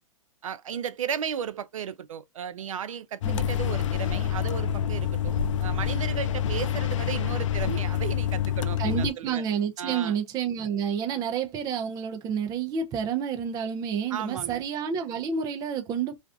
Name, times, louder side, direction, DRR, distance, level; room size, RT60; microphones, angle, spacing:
voice 1, 0.4-9.4 9.8-10.2 14.1-14.6, right 8 dB, 85° right, 0.4 m, -34 dB
sound 1, 3.2-9.1, left 9 dB, 70° left, 0.4 m, -27 dB
voice 2, 8.8-16.2, right 7 dB, 20° right, 0.4 m, -29 dB
2.5 x 2.3 x 2.2 m
hypercardioid pair, 130°, 17 cm